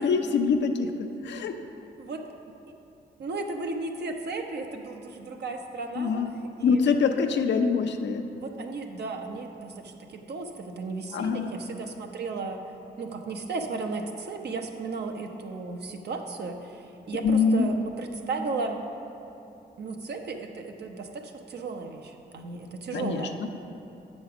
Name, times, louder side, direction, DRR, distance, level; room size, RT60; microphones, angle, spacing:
voice 1, 0.0-1.6 6.0-6.4 6.6-8.2 11.1-11.6 17.2-17.7 22.9-23.5, left 5 dB, 75° left, 6 dB, 0.6 m, -24 dB
voice 2, 3.2-6.8 8.4-12.6 13.0-18.8 19.8-23.4, right 3 dB, 65° right, 4 dB, 0.8 m, -35 dB
7.7 x 5.4 x 6.0 m, 2.8 s
cardioid pair, 60°, 19 cm